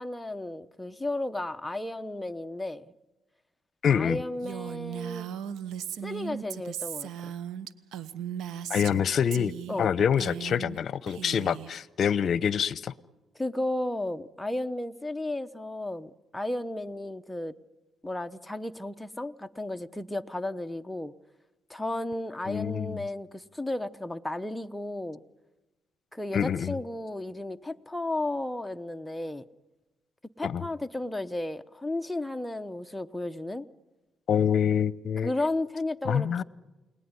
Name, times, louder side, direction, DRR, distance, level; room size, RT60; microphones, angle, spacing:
voice 1, 0.0-2.9 3.9-5.3 6.0-7.3 9.7-9.9 13.4-17.5 18.0-21.1 21.7-25.2 26.1-29.5 30.4-33.7 35.2-36.4, left 1 dB, 5° left, 0.9 m, -33 dB
voice 2, 3.8-4.2 8.7-9.5 9.8-12.9 22.5-23.0 26.3-26.7 30.4-30.6 34.3-35.3 36.0-36.4, left 8 dB, 60° left, 0.8 m, -26 dB
Female speech woman speaking, 4.4-9.0 9.3-9.9 10.1-10.8 11.1-11.7, right 9 dB, 85° right, 1.0 m, -37 dB
29.5 x 19.0 x 9.7 m
cardioid pair, 90°, 0 cm